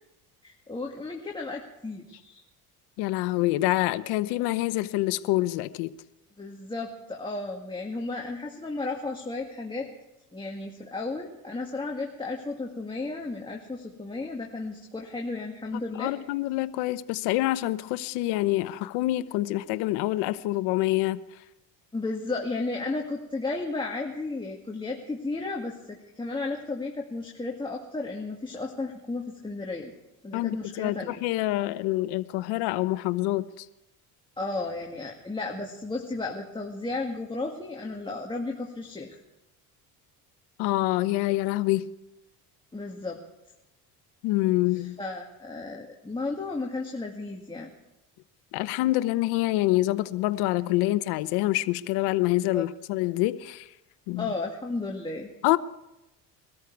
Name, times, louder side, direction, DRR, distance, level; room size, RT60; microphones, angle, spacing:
voice 1, 0.4-2.4 6.4-9.9 10.3-16.1 21.9-29.9 30.2-31.2 34.4-39.2 42.7-43.2 44.8-47.7 52.5-52.7 54.2-55.3, left 3 dB, 10° left, 2.0 m, -34 dB
voice 2, 3.0-5.9 16.0-21.2 30.3-33.6 40.6-41.9 44.2-45.0 48.5-53.7 54.1-54.3 55.4-55.6, left 17 dB, 85° left, 0.9 m, -26 dB
22.5 x 13.5 x 4.7 m
cardioid pair, 105°, 38 cm